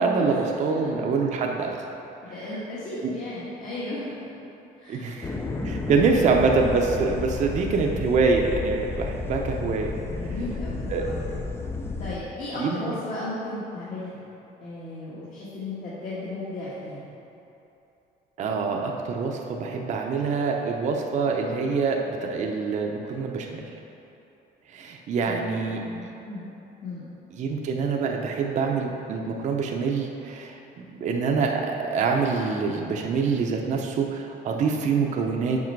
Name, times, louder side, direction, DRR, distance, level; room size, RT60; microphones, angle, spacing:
voice 1, 0.0-1.9 3.0-3.1 4.9-5.3 5.6-9.9 10.9-11.0 12.5-13.0 18.4-23.6 24.7-26.1 27.3-35.6, right 4 dB, 45° right, 1 dB, 0.7 m, -25 dB
voice 2, 2.2-4.3 4.8-5.3 5.6-6.3 10.1-11.3 12.0-14.2 14.6-17.0 25.2-25.5 25.7-26.5 26.8-27.1, left 2 dB, 45° left, -8 dB, 1.5 m, -35 dB
sound 1, 5.2-12.2, left 3 dB, 15° left, 0.4 m, -32 dB
7.4 x 5.4 x 4.6 m, 2.9 s
cardioid pair, 140°, 18 cm